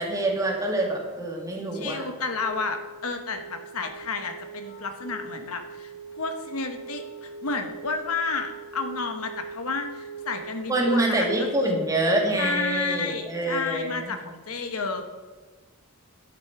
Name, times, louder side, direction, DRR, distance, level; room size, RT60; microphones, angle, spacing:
voice 1, 0.0-2.0 10.7-14.2, right 1 dB, 15° right, -1 dB, 2.3 m, -26 dB
voice 2, 1.7-11.7 12.3-15.0, left 4 dB, 80° left, 7 dB, 1.2 m, -31 dB
Wind instrument woodwind instrument, 2.2-11.9, right 4 dB, 40° left, 2.9 m, -41 dB
11.5 x 7.8 x 6.0 m, 1.4 s
head